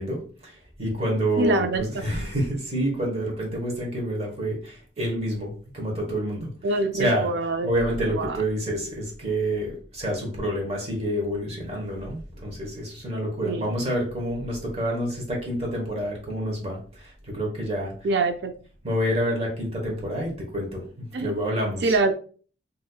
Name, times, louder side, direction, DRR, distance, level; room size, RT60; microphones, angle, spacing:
voice 1, 0.0-18.2 18.8-22.0, equal, 30° right, 1.0 m, -28 dB
voice 2, 1.4-1.9 6.6-7.7 8.0-8.4 13.4-13.7 18.0-18.5 21.1-21.3 21.8-22.1, right 3 dB, 60° right, 0.3 m, -24 dB
4.0 x 2.6 x 2.3 m
head